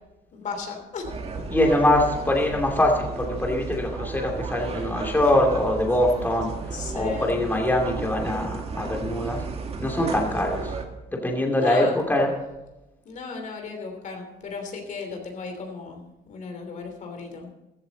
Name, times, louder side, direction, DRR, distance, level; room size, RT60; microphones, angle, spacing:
voice 1, 0.3-1.4 6.7-7.3 11.5-12.0 13.0-17.5, left 4 dB, 45° left, 3 dB, 3.0 m, -35 dB
sound 1, 1.0-10.9, right 4 dB, 35° right, 2.0 m, -33 dB
voice 2, 1.5-6.5 6.9-9.4 9.8-10.7 11.1-12.3, left 1 dB, 10° left, 0 dB, 2.7 m, -23 dB
15.0 x 13.5 x 4.1 m, 1.0 s
cardioid pair, 110°, 17 cm